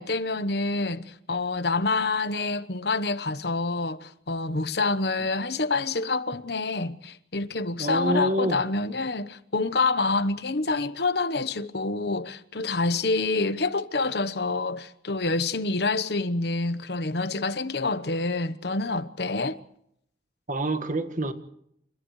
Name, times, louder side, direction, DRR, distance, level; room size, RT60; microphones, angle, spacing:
voice 1, 0.0-19.6, left 3 dB, 60° left, 1.0 m, -27 dB
voice 2, 7.8-8.7 20.5-21.3, right 1 dB, 40° right, 1.7 m, -26 dB
29.5 x 29.0 x 3.2 m
head